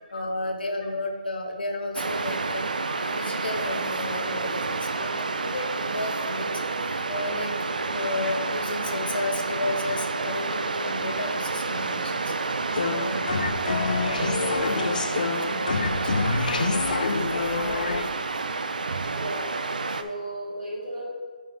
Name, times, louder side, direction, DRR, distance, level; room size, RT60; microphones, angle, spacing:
voice 1, 0.1-2.6 3.1-6.5 7.1-7.5 7.8-12.3 12.9-13.3 14.0-15.0 15.5-16.7, left 2 dB, 80° left, 2 dB, 1.4 m, -33 dB
Waves surf, 2.0-20.0, right 3 dB, 60° right, 0.5 m, -29 dB
voice 2, 2.9-3.3 8.2-8.3 11.8-11.9 19.1-19.5 20.0-21.1, right 1 dB, 15° right, -8 dB, 1.9 m, -36 dB
sound 1, 12.7-18.0, left 3 dB, 55° left, 0.6 m, -26 dB
9.7 x 5.4 x 3.2 m, 1.5 s
hypercardioid pair, 175°, 5 cm